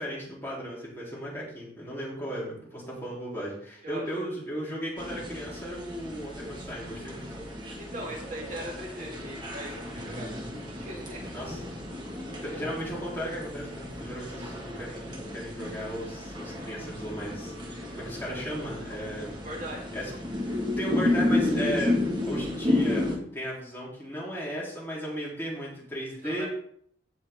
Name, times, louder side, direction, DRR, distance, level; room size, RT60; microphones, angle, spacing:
voice 1, 0.0-7.3 9.9-10.1 11.3-11.6 12.4-19.4 19.9-20.1 20.4-22.0 22.3-26.5, equal, 10° left, -6 dB, 3.4 m, -36 dB
voice 2, 3.8-4.6 7.8-10.3 10.8-11.3 19.4-19.8 26.2-26.5, right 1 dB, 45° right, -2 dB, 2.5 m, -39 dB
sound 1, 5.0-23.2, left 2 dB, 25° right, 1.8 m, -32 dB
15.5 x 5.6 x 3.7 m, 0.62 s
head